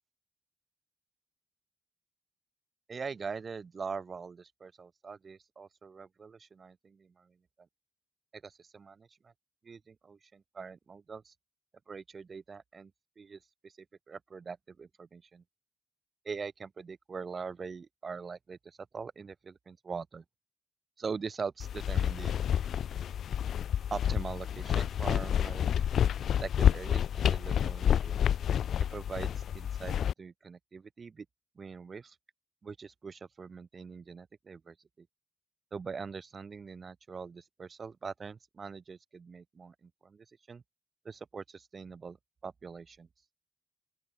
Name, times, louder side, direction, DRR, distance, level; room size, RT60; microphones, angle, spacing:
voice 1, 2.9-7.4 8.3-9.3 9.6-11.3 11.9-12.9 13.2-15.4 16.2-20.2 21.0-22.3 23.9-25.8 26.4-28.2 28.9-31.2 31.5-32.2 32.6-35.1 35.7-40.6 41.0-42.2 42.4-43.1, right 5 dB, 40° right, 6.8 m, -42 dB
sound 1, 21.6-30.1, left 9 dB, 80° left, 0.7 m, -29 dB
open air
wide cardioid pair, 120°, 0 cm